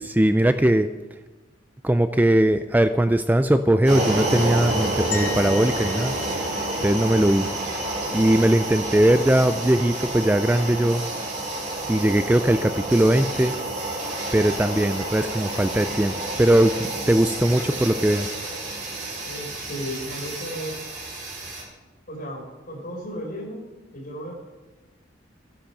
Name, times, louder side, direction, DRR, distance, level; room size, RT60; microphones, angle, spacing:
voice 1, 0.1-0.9 1.8-6.1 6.8-7.5 8.1-11.0 11.9-13.5 14.3-18.3, right 1 dB, 10° right, 9 dB, 0.4 m, -20 dB
sound 1, 3.8-21.6, right 1 dB, 40° right, 4.4 m, -29 dB
sound 2, 5.1-7.4, left 3 dB, 10° left, 0.9 m, -37 dB
voice 2, 19.2-20.8 21.0-21.2 22.1-23.7 23.9-24.3, equal, 50° left, 0 dB, 4.4 m, -34 dB
14.5 x 10.0 x 5.9 m, 1.2 s
head